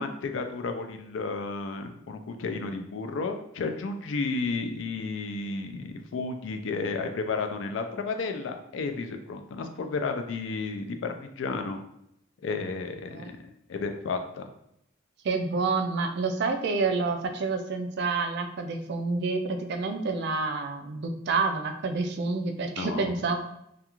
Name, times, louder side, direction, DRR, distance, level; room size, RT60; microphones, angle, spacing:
voice 1, 0.0-11.8 12.4-13.4 13.7-14.4 22.8-23.1, left 4 dB, 65° left, 6 dB, 0.3 m, -32 dB
voice 2, 15.2-23.4, right 4 dB, 55° right, 6 dB, 0.3 m, -28 dB
2.4 x 2.3 x 2.9 m, 0.76 s
head